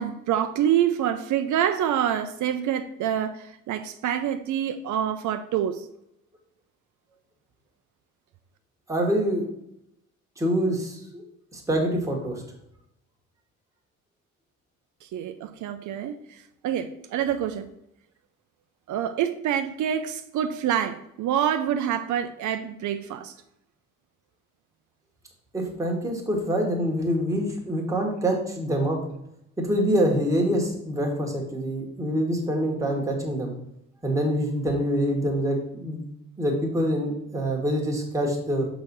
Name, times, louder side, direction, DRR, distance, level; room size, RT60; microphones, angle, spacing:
voice 1, 0.0-5.8 15.1-17.7 18.9-23.3, right 9 dB, 75° right, 0.6 m, -26 dB
voice 2, 8.9-9.5 10.4-11.2 11.5-12.4 25.5-29.0 29.6-33.5 34.0-36.0 36.4-38.7, equal, 10° right, 1.4 m, -25 dB
6.5 x 4.0 x 6.0 m
cardioid pair, 175°, 31 cm